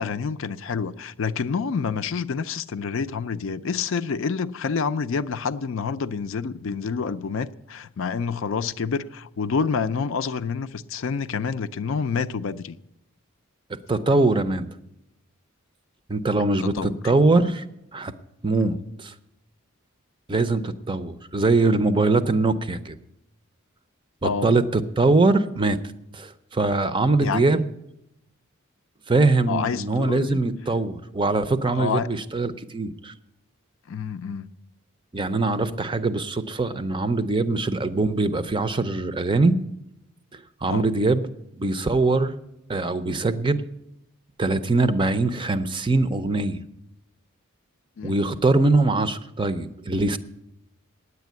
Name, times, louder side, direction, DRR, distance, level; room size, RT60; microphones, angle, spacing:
voice 1, 0.0-12.8 16.6-16.9 18.6-18.8 24.2-24.5 27.2-27.4 29.5-30.4 31.7-32.1 33.9-34.5 40.7-40.8 48.0-48.2, left 5 dB, 60° left, 0.4 m, -28 dB
voice 2, 13.9-14.7 16.1-17.6 17.9-18.1 18.4-19.1 20.3-23.0 24.2-25.8 26.1-27.7 29.1-33.1 35.1-39.6 40.3-41.2 41.6-42.3 42.7-43.7 44.4-46.6 48.0-50.2, right 3 dB, 20° right, 0.5 m, -22 dB
9.6 x 8.3 x 9.3 m
head